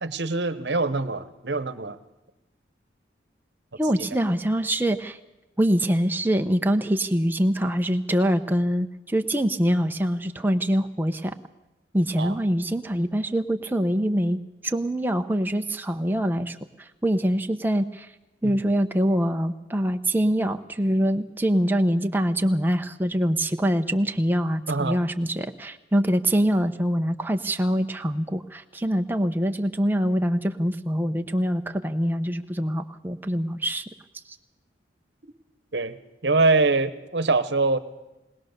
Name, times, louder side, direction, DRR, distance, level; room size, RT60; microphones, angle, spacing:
voice 1, 0.0-2.0 4.0-4.1 12.2-12.4 18.4-18.5 24.7-25.0 35.7-36.0 36.2-37.8, right 3 dB, 65° right, 13 dB, 1.1 m, -24 dB
voice 2, 3.8-5.2 5.6-11.4 11.9-16.6 17.0-18.1 18.4-33.8, equal, 10° right, 5 dB, 0.7 m, -24 dB
20.0 x 20.0 x 6.6 m, 1.0 s
head